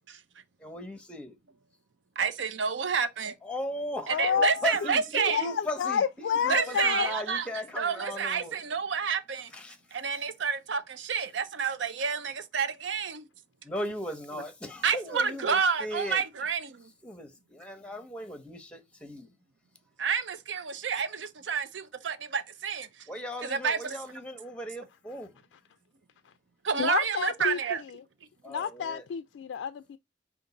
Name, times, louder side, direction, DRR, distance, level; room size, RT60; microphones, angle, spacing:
voice 1, 0.6-1.4 3.4-8.5 9.5-10.0 13.6-16.2 17.0-19.3 23.1-25.3 28.4-29.0, left 1 dB, 5° left, 0.7 m, -37 dB
voice 2, 2.2-3.4 4.1-5.4 6.5-9.5 9.9-13.3 14.8-16.9 20.0-23.1 23.4-23.9 26.6-27.8, right 6 dB, 85° right, 0.6 m, -29 dB
voice 3, 4.1-4.7 5.3-7.2 26.2-26.3 26.8-28.0 28.5-30.0, left 7 dB, 80° left, 0.3 m, -30 dB
5.2 x 2.5 x 3.9 m
head